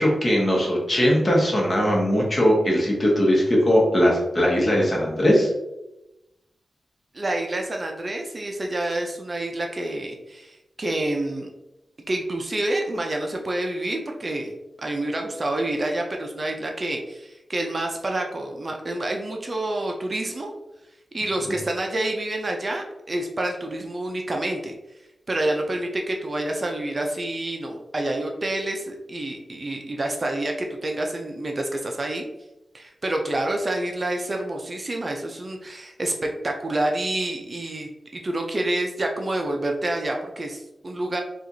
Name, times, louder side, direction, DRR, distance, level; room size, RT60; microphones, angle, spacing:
voice 1, 0.0-5.5, equal, 35° left, -2 dB, 1.0 m, -20 dB
voice 2, 7.1-11.5 12.1-14.5 14.8-20.5 21.1-24.7 25.3-32.2 32.7-41.2, right 1 dB, 35° right, 2 dB, 0.4 m, -28 dB
4.4 x 2.4 x 2.6 m, 0.94 s
wide cardioid pair, 95°, 0 cm